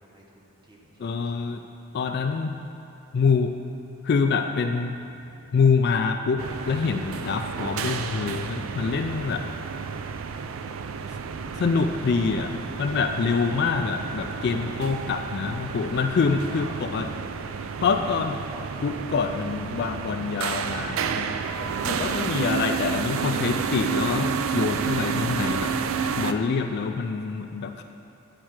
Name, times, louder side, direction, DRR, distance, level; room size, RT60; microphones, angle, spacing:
voice 1, 0.0-1.5 12.9-13.0 16.3-16.8 21.5-22.4, right 1 dB, 20° right, -2 dB, 1.0 m, -46 dB
voice 2, 1.0-1.6 1.9-2.5 3.1-3.5 4.0-5.0 5.5-9.4 11.6-17.1 17.8-18.4 18.8-21.4 21.8-25.7 26.2-27.8, left 5 dB, 50° left, 5 dB, 0.3 m, -25 dB
sound 1, 4.3-17.6 17.9-18.0, equal, 75° left, 0.9 m, -50 dB
sound 2, 6.4-26.3, right 6 dB, 70° right, 0.4 m, -30 dB
8.9 x 4.5 x 6.2 m, 2.9 s
head